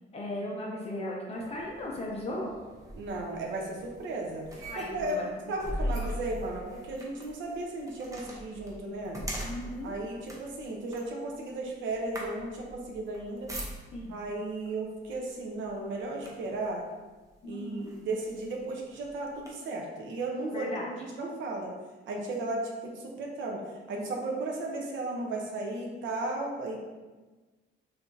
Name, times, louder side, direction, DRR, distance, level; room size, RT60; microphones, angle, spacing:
voice 1, 0.1-2.5 4.7-5.3 5.8-5.9 9.4-9.9 13.9-14.2 17.4-17.9 20.5-20.9, left 1 dB, 35° left, -2 dB, 0.7 m, -37 dB
sound 1, 1.4-14.2 15.0-15.2 15.6-16.7 17.3-17.4 17.8-19.5, equal, 15° right, 0.7 m, -41 dB
voice 2, 2.9-4.5 4.9-5.2 5.5-9.2 9.8-13.5 14.1-16.8 17.4-21.7 22.1-23.6 23.9-26.8, right 2 dB, 80° right, 0 dB, 0.8 m, -35 dB
5.8 x 2.9 x 2.7 m, 1.3 s
cardioid pair, 160°, 19 cm